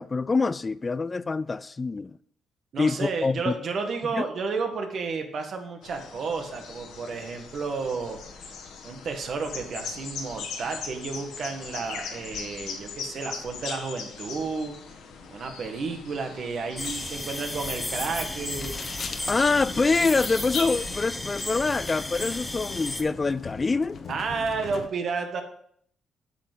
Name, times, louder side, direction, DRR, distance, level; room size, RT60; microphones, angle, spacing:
voice 1, 0.0-2.1 2.8-3.5 4.2-4.3 19.3-24.0, left 4 dB, 30° left, 0.3 m, -25 dB
voice 2, 2.7-8.5 8.8-15.0 15.3-18.8 24.1-25.4, right 4 dB, 55° right, 1.7 m, -32 dB
sound 1, 5.8-21.0, left 5 dB, 85° left, 1.6 m, -40 dB
sound 2, 16.8-23.0, left 1 dB, 10° left, 1.0 m, -34 dB
sound 3, 17.5-24.9, left 6 dB, 55° left, 1.1 m, -40 dB
8.5 x 5.8 x 6.2 m
cardioid pair, 90°, 0 cm